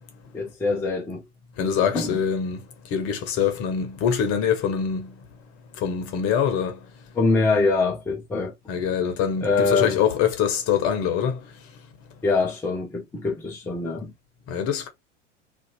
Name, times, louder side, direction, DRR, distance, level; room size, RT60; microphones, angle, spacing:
voice 1, 0.3-1.2 1.9-2.2 7.1-8.5 9.4-10.0 12.2-14.1, left 3 dB, 5° left, 0.5 m, -24 dB
voice 2, 1.6-2.6 2.9-5.1 5.8-6.8 8.7-11.4 14.5-14.9, left 8 dB, 40° left, 0.9 m, -24 dB
2.5 x 2.4 x 2.7 m
figure-of-eight pair, 90°, 37 cm